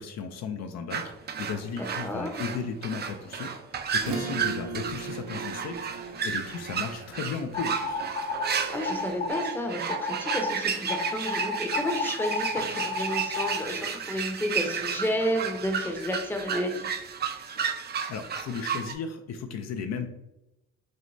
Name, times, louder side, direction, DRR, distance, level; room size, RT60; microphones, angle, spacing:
voice 1, 0.0-8.0 18.1-20.1, left 6 dB, 60° left, 6 dB, 0.5 m, -35 dB
sound 1, 0.9-18.9, right 6 dB, 35° right, 0.4 m, -33 dB
voice 2, 1.8-2.3 8.7-16.9, left 1 dB, 5° left, 3 dB, 0.6 m, -31 dB
Acoustic guitar / Strum, 4.0-8.9, right 4 dB, 85° right, 0.8 m, -38 dB
sound 2, 7.5-8.5 8.8-9.5 9.9-10.5 10.9-13.6, left 3 dB, 35° left, 0.8 m, -31 dB
6.1 x 2.1 x 2.6 m, 0.91 s
cardioid pair, 90°, 30 cm